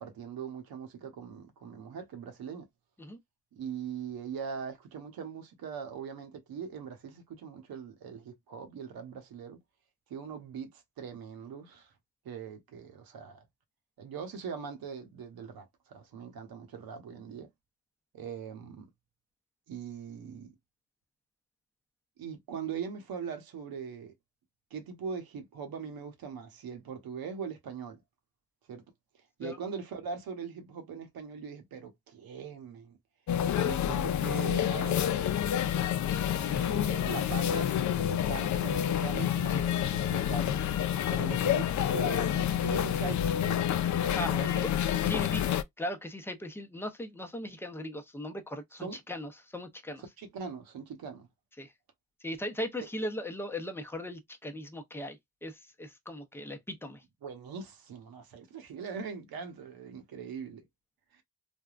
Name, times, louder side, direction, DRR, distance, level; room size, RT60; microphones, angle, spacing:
voice 1, 0.0-2.7 3.5-9.6 10.1-11.9 12.2-13.4 14.0-17.5 18.1-18.9 19.7-20.5 22.2-24.1 24.7-28.0 28.7-28.8 29.4-33.0 33.6-35.0 36.4-40.6 41.1-43.7 44.3-44.5 48.8-49.0 50.2-51.3 57.2-60.7 61.1-61.2, right 6 dB, 85° right, 1.0 m, -41 dB
sound 1, 33.3-45.6, left 10 dB, 55° left, 0.4 m, -28 dB
voice 2, 44.6-45.4 45.8-50.0 51.6-51.7 52.2-57.0, left 1 dB, 5° left, 0.6 m, -38 dB
3.4 x 2.2 x 2.4 m
cardioid pair, 90°, 35 cm